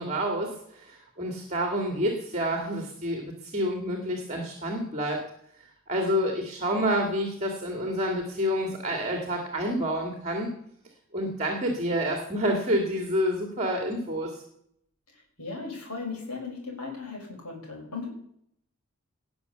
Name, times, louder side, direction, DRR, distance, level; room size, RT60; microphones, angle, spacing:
voice 1, 0.0-5.2 5.9-10.5 11.1-14.4, equal, 30° right, 3 dB, 2.3 m, -28 dB
voice 2, 15.1-18.1, left 4 dB, 85° left, 0 dB, 5.4 m, -37 dB
19.0 x 7.0 x 6.9 m, 0.70 s
head